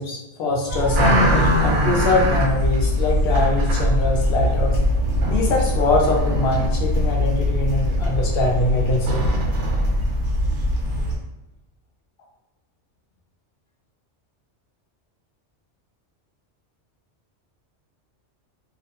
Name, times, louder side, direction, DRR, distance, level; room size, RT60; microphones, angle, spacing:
voice 1, 0.0-4.8 5.3-9.2, left 2 dB, 60° left, -1 dB, 0.7 m, -23 dB
sound 1, 0.7-11.2, left 1 dB, 80° right, 0.9 m, -21 dB
2.5 x 2.1 x 2.7 m, 0.99 s
omnidirectional pair, 1.2 m